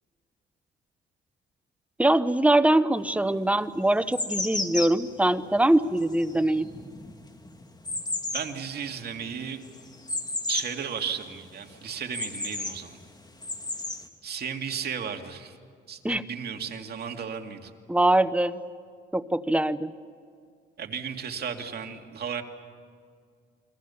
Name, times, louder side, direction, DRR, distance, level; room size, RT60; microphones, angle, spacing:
voice 1, 2.0-6.7 16.0-16.2 17.9-18.6 19.1-19.9, right 1 dB, 5° right, 13 dB, 0.9 m, -23 dB
sound 1, 3.0-3.1 3.7-10.9 11.2-11.3 11.6-12.8 13.3-14.1, left 2 dB, 20° left, 2.4 m, -33 dB
voice 2, 8.3-9.7 10.5-13.0 14.2-15.6 15.9-17.7 20.8-22.4, right 7 dB, 55° right, 4 dB, 2.3 m, -34 dB
29.0 x 22.5 x 7.1 m, 2.2 s
cardioid pair, 90°, 20 cm